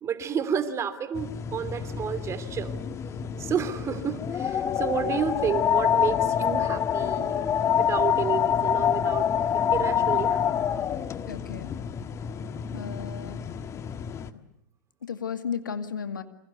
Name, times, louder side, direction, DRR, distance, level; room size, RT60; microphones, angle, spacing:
voice 1, 0.0-2.7 3.4-7.4 7.8-9.3 9.7-10.4, right 7 dB, 25° right, 11 dB, 3.0 m, -30 dB
sound 1, 1.1-14.3, left 9 dB, 30° left, 1.6 m, -27 dB
voice 2, 11.3-11.7 12.7-13.4 14.3-14.4 15.0-16.2, left 7 dB, 80° left, 9 dB, 2.2 m, -34 dB
28.0 x 26.0 x 8.1 m, 0.74 s
hypercardioid pair, 100°, 10 cm